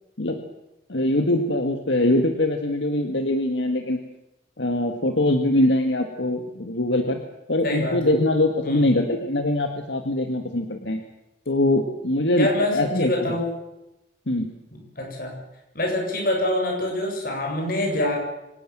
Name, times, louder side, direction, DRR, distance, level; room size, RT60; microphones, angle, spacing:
voice 1, 0.9-4.0 4.6-7.2 7.5-11.0 11.5-13.4 14.3-14.5, left 1 dB, 80° left, 5 dB, 1.9 m, -22 dB
voice 2, 7.6-8.1 8.6-8.9 12.4-13.4 14.7-15.3 15.7-18.2, left 1 dB, 50° left, 1 dB, 7.7 m, -25 dB
25.5 x 19.0 x 7.5 m, 0.91 s
head